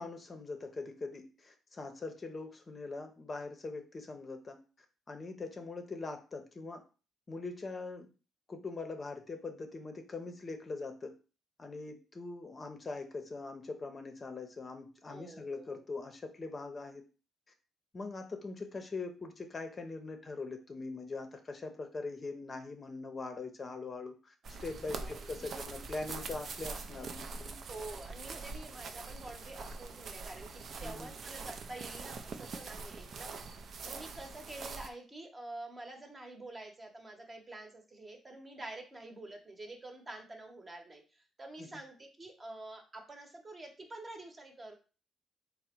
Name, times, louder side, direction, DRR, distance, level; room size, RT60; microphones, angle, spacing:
voice 1, 0.0-4.6 5.1-6.8 7.3-8.1 8.5-11.1 11.6-17.0 17.9-24.3 24.6-27.6 30.8-31.1 41.6-41.7, left 3 dB, 35° left, 5 dB, 0.6 m, -42 dB
voice 2, 15.1-15.8 24.9-25.7 27.7-44.7, right 2 dB, 25° right, 3 dB, 0.9 m, -48 dB
sound 1, 24.4-34.9, right 4 dB, 55° right, 0.4 m, -44 dB
3.7 x 2.1 x 4.3 m, 0.34 s
cardioid pair, 90°, 0 cm